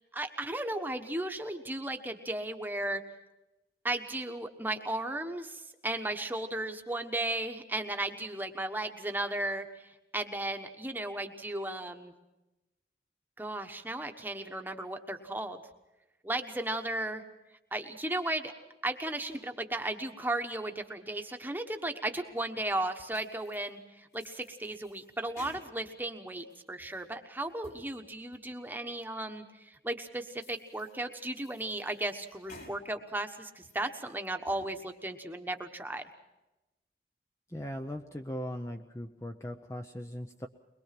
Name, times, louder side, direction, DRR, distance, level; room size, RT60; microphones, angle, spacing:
voice 1, 0.1-3.0 3.8-12.1 13.4-15.6 16.2-17.2 17.7-18.5 18.8-36.0, right 1 dB, 10° right, 5 dB, 1.2 m, -35 dB
sound 1, 23.1-23.7 24.1-26.0 26.4-27.0 27.5-27.9 28.3-28.4 29.0-29.1 29.7-29.8 30.3-31.0 31.3-32.8 33.2-33.8 34.3-34.7, left 2 dB, 55° left, 4.5 m, -55 dB
voice 2, 37.5-40.5, equal, 15° left, 4 dB, 0.7 m, -39 dB
22.5 x 22.0 x 6.0 m, 1.0 s
head